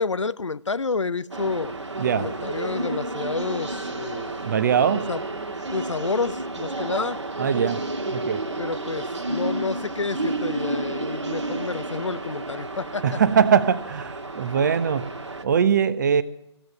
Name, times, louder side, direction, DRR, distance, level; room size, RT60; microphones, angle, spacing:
voice 1, 0.0-1.8 2.1-4.4 4.9-5.2 5.7-7.2 8.6-13.2, left 4 dB, 85° left, 0.6 m, -29 dB
sound 1, 1.3-15.4, right 2 dB, 80° right, 1.7 m, -31 dB
voice 2, 2.0-2.3 4.4-5.0 7.4-7.8 8.1-8.4 13.0-15.1 15.4-16.2, right 7 dB, 40° right, 0.8 m, -21 dB
16.0 x 7.9 x 9.2 m
figure-of-eight pair, 145°, 15 cm